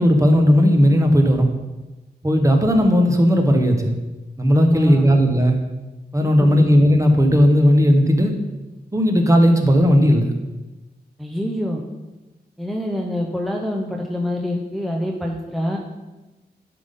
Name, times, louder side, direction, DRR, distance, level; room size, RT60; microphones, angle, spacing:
voice 1, 0.0-1.5 2.2-3.9 4.4-5.6 6.1-8.3 8.9-10.3, equal, 20° right, 4 dB, 1.0 m, -15 dB
voice 2, 4.5-5.0 6.2-6.6 11.2-11.8 12.6-15.8, equal, ahead, 0 dB, 0.7 m, -25 dB
10.5 x 3.7 x 5.3 m, 1.1 s
wide cardioid pair, 110°, 17 cm